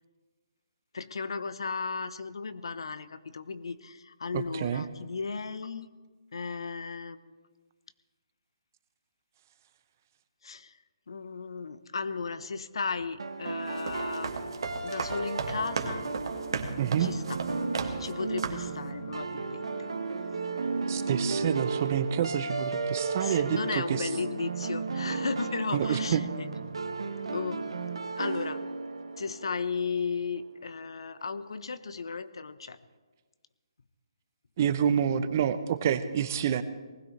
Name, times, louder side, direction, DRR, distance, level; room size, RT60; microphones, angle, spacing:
voice 1, 0.9-5.9 6.3-7.2 10.4-10.8 11.1-14.5 14.8-16.1 17.0-17.4 18.0-19.7 23.2-26.5 27.3-28.6 29.2-32.8, left 5 dB, 75° left, 13 dB, 0.9 m, -35 dB
voice 2, 4.3-4.9 16.8-17.1 20.9-24.1 25.7-26.3 34.6-36.6, right 8 dB, 35° right, 12 dB, 0.7 m, -28 dB
sound 1, 13.2-30.1, right 4 dB, 85° right, 1.1 m, -34 dB
sound 2, 13.7-18.1 18.4-18.8, right 5 dB, 60° right, 1.7 m, -36 dB
sound 3, 14.8-22.8, left 3 dB, 10° left, 1.7 m, -54 dB
19.5 x 16.0 x 3.3 m, 1.4 s
hypercardioid pair, 160°, 3 cm